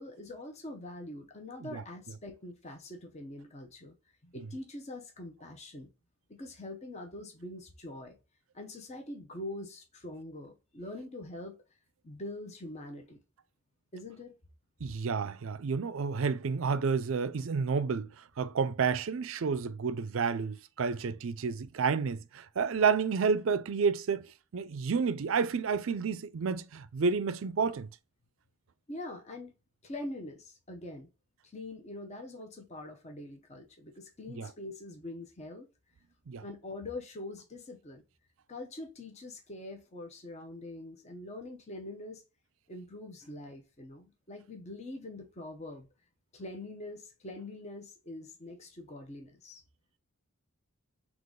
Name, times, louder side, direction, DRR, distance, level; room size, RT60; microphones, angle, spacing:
voice 1, 0.0-3.9 4.2-5.9 6.3-8.2 8.5-11.6 12.0-13.2 13.9-14.3 28.9-29.5 29.8-31.1 31.4-35.7 36.4-38.0 38.5-42.2 42.7-45.9 46.3-49.6, left 2 dB, 30° left, 0.7 m, -44 dB
voice 2, 14.8-18.1 18.4-24.3 24.5-27.9 34.3-34.5 36.3-36.4, right 5 dB, 60° right, 0.4 m, -30 dB
3.8 x 2.9 x 3.7 m
head